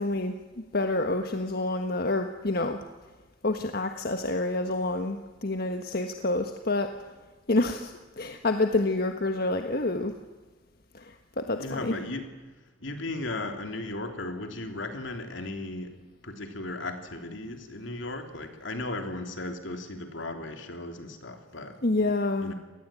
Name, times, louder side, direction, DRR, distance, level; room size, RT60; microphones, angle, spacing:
voice 1, 0.0-2.8 3.4-6.9 7.5-10.1 10.9-12.0 21.8-22.5, left 2 dB, 55° left, 6 dB, 1.4 m, -28 dB
voice 2, 11.6-12.3 12.8-16.0 16.2-21.8 22.4-22.5, left 2 dB, 75° left, 5 dB, 3.3 m, -36 dB
26.5 x 19.5 x 9.0 m, 1.3 s
head